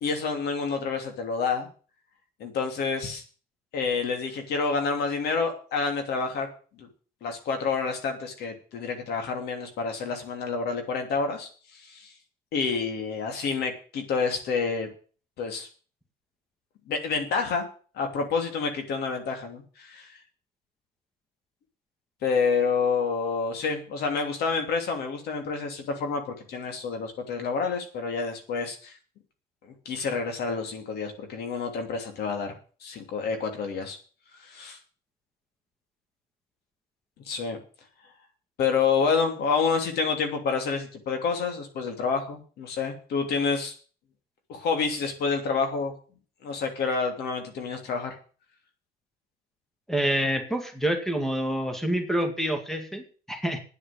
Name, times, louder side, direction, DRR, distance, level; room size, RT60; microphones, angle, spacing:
voice 1, 0.0-1.7 2.4-3.2 3.7-6.5 6.8-6.9 7.2-12.1 12.5-14.9 15.4-15.7 16.9-17.6 17.9-20.1 22.2-28.9 29.6-32.5 32.8-34.0 34.4-34.8 37.3-37.6 38.6-43.7 44.5-45.9 46.4-48.2, left 5 dB, 70° left, 5 dB, 3.1 m, -28 dB
voice 2, 49.9-53.6, right 1 dB, ahead, 6 dB, 2.2 m, -27 dB
9.2 x 8.6 x 8.6 m, 0.40 s
cardioid pair, 110°, 17 cm